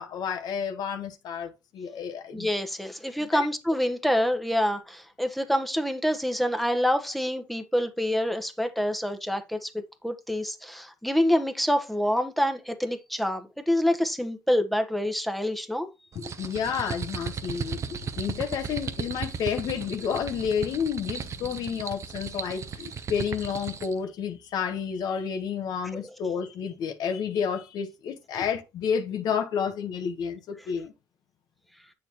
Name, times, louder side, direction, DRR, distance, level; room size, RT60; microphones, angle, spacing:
voice 1, 0.0-2.5 3.2-3.5 16.1-30.9, left 7 dB, 70° left, 1.2 m, -30 dB
voice 2, 2.3-15.9 26.0-26.1, equal, ahead, 1.1 m, -27 dB
sound 1, 16.1-24.0, right 6 dB, 45° right, 0.8 m, -36 dB
7.4 x 6.6 x 3.0 m
cardioid pair, 90°, 7 cm